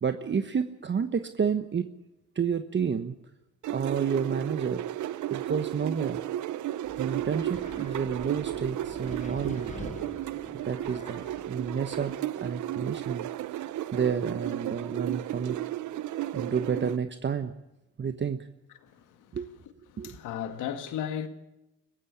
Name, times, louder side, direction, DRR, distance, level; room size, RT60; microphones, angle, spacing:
voice 1, 0.0-1.9 2.3-3.2 3.7-4.8 5.3-6.2 7.0-10.0 10.6-13.3 13.9-15.6 16.3-17.5 18.0-18.5 19.3-19.5 20.0-20.1, right 6 dB, 40° right, 1.2 m, -30 dB
sound 1, 3.6-17.0, right 13 dB, 75° right, 0.9 m, -34 dB
Wind, 6.8-12.1, left 4 dB, 25° left, 1.5 m, -46 dB
voice 2, 18.8-19.3 19.9-21.3, left 9 dB, 85° left, 2.1 m, -35 dB
21.5 x 15.5 x 8.6 m
cardioid pair, 90°, 30 cm